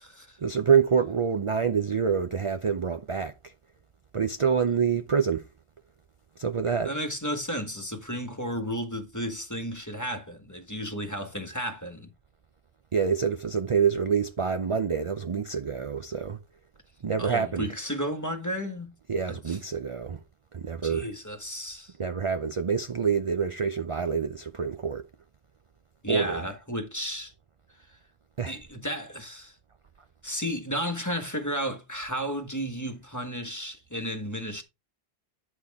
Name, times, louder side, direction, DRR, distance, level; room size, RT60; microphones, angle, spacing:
voice 1, 0.4-3.5 4.1-5.4 6.4-6.9 12.9-16.4 17.0-17.7 19.1-20.2 20.5-21.1 22.0-25.0 26.1-26.4 28.4-28.5, right 6 dB, 40° right, 0.5 m, -26 dB
voice 2, 6.8-12.1 17.2-18.9 19.3-19.6 20.8-21.9 26.0-27.3 28.5-29.5 30.2-34.6, equal, 15° left, 1.3 m, -33 dB
9.5 x 6.4 x 3.5 m
omnidirectional pair, 1.1 m